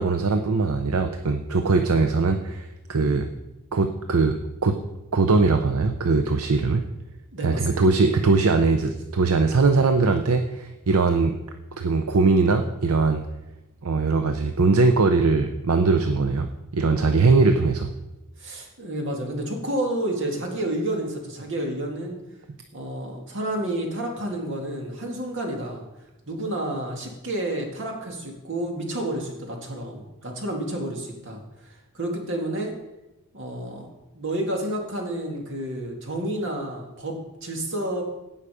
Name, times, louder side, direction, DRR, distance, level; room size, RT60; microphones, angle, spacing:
voice 1, 0.0-3.3 3.7-4.8 5.1-6.8 7.4-11.4 11.8-13.2 13.8-16.5 16.7-17.9, right 3 dB, 75° right, 6 dB, 0.7 m, -21 dB
voice 2, 7.3-7.8 17.2-17.4 18.4-22.2 22.7-25.8 26.3-32.7 33.3-33.9 34.1-38.0, right 1 dB, 55° right, 1 dB, 2.2 m, -30 dB
17.0 x 5.7 x 5.0 m, 1.0 s
head